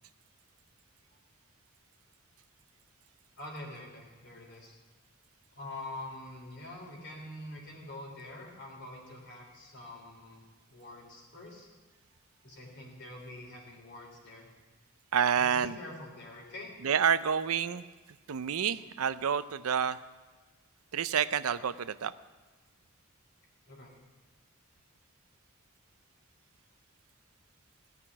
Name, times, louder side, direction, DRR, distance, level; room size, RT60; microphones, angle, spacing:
voice 1, 3.3-4.7 5.5-11.7 12.4-14.5 15.3-16.7 23.7-23.9, left 1 dB, 55° left, 0 dB, 3.4 m, -45 dB
voice 2, 15.1-15.8 16.8-17.8 18.3-20.0 20.9-22.1, right 7 dB, 85° right, 14 dB, 0.5 m, -28 dB
16.5 x 5.9 x 9.8 m, 1.3 s
head